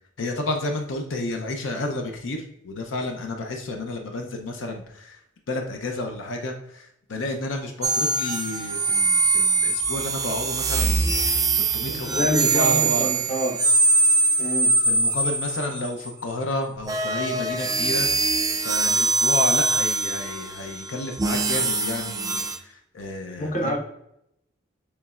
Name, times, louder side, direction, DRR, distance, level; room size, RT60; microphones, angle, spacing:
voice 1, 0.2-5.2 5.5-13.1 14.9-18.1 18.6-23.8, left 2 dB, 75° left, 4 dB, 0.6 m, -31 dB
sound 1, 7.8-16.1 16.8-22.6, right 3 dB, 20° right, 0.4 m, -23 dB
voice 2, 11.9-13.6 14.4-14.7 23.4-23.8, equal, 40° left, 2 dB, 0.9 m, -27 dB
6.9 x 3.2 x 2.4 m, 0.78 s
head